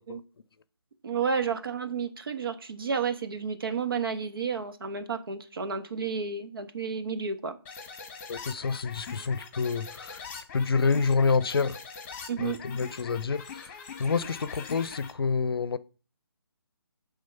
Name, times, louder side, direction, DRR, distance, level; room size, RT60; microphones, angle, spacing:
voice 1, 1.0-7.6 12.3-12.6, right 6 dB, 60° right, 1.1 m, -31 dB
sound 1, 7.7-15.1, left 6 dB, 30° left, 1.1 m, -43 dB
voice 2, 8.3-10.2 10.5-11.8 12.4-15.8, left 4 dB, 65° left, 0.6 m, -28 dB
9.4 x 3.7 x 5.5 m
figure-of-eight pair, 150°, 13 cm